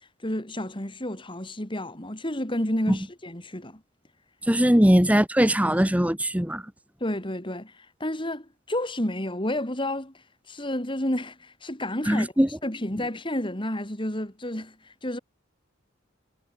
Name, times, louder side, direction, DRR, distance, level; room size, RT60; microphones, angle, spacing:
voice 1, 0.2-3.8 7.0-10.1 10.5-12.3 12.6-15.2, left 1 dB, 25° left, 3.8 m, -30 dB
voice 2, 4.5-6.6 12.1-12.5, equal, 5° right, 1.5 m, -20 dB
head